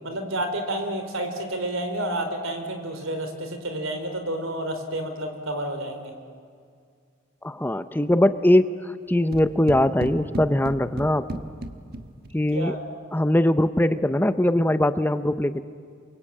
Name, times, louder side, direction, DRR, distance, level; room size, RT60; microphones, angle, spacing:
voice 1, 0.0-6.1 12.5-12.8, right 1 dB, 85° right, 6 dB, 4.0 m, -30 dB
voice 2, 7.4-11.3 12.3-12.7 13.1-15.6, left 1 dB, 10° left, 12 dB, 0.6 m, -21 dB
sound 1, 9.3-12.5, right 1 dB, 50° right, 1.3 m, -35 dB
28.0 x 23.5 x 8.7 m, 2.2 s
head